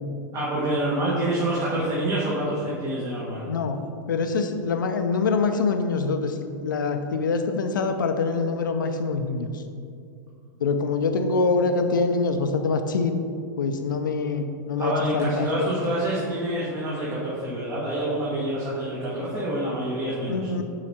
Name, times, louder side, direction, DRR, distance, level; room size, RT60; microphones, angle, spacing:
voice 1, 0.3-3.5 14.8-20.5, right 1 dB, 30° right, -6 dB, 1.6 m, -27 dB
voice 2, 3.5-9.6 10.6-13.2 13.6-15.7 20.3-20.6, left 4 dB, 90° left, 7 dB, 0.5 m, -25 dB
7.6 x 4.9 x 4.2 m, 2.4 s
hypercardioid pair, 105°, 10 cm